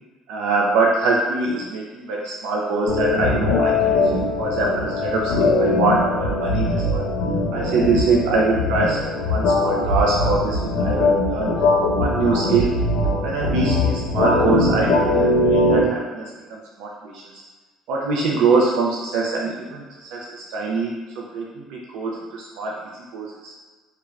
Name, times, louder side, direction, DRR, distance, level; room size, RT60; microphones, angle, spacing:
voice 1, 0.3-7.1 7.5-11.5 12.0-12.8 13.2-17.2 17.9-20.9 21.2-23.6, right 3 dB, 80° right, -3 dB, 0.4 m, -23 dB
sound 1, 2.9-15.8, left 2 dB, 80° left, 0.6 m, -21 dB
2.4 x 2.1 x 3.2 m, 1.3 s
cardioid pair, 115°, 0 cm